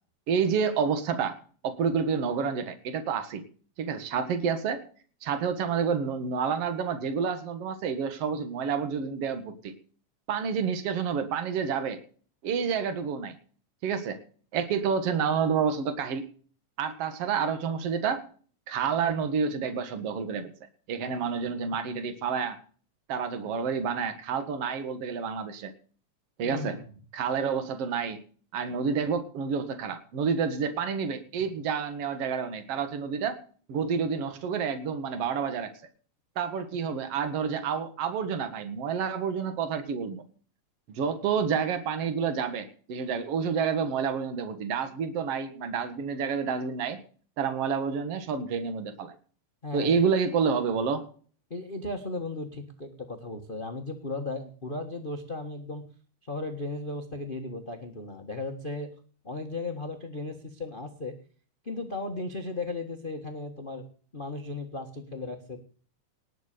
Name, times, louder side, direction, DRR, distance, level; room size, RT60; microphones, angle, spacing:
voice 1, 0.3-1.4 1.6-3.4 3.8-4.8 5.2-9.7 10.3-12.0 12.4-13.4 13.8-14.2 14.5-16.2 16.8-18.2 18.7-20.5 20.9-22.6 23.1-25.7 26.4-26.8 27.1-28.2 28.5-33.4 33.7-35.7 36.4-40.2 40.9-47.0 47.4-49.1 49.7-51.1, right 6 dB, 55° right, 9 dB, 2.4 m, -29 dB
voice 2, 26.4-26.8 49.6-50.0 51.5-55.8 56.2-58.9 59.2-61.1 61.6-63.8 64.1-65.6, left 2 dB, 35° left, 5 dB, 0.9 m, -36 dB
19.0 x 6.6 x 6.7 m, 0.43 s
omnidirectional pair, 3.5 m